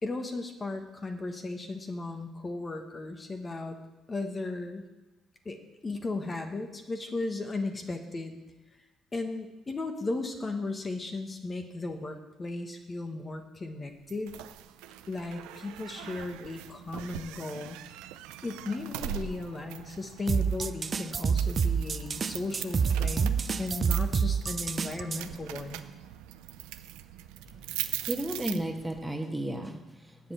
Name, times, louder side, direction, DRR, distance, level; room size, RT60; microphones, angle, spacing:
voice 1, 0.0-3.8 4.1-4.8 5.4-8.4 8.7-8.8 9.1-14.4 15.1-17.8 18.4-25.8, left 3 dB, 30° left, 4 dB, 1.3 m, -36 dB
sound 1, 14.1-29.0, right 12 dB, 90° right, 0.5 m, -41 dB
sound 2, 20.3-25.2, right 6 dB, 40° right, 0.5 m, -27 dB
voice 2, 27.5-30.3, right 1 dB, 10° right, 3 dB, 1.4 m, -34 dB
8.0 x 7.0 x 7.9 m, 1.1 s
supercardioid pair, 75°, 0 cm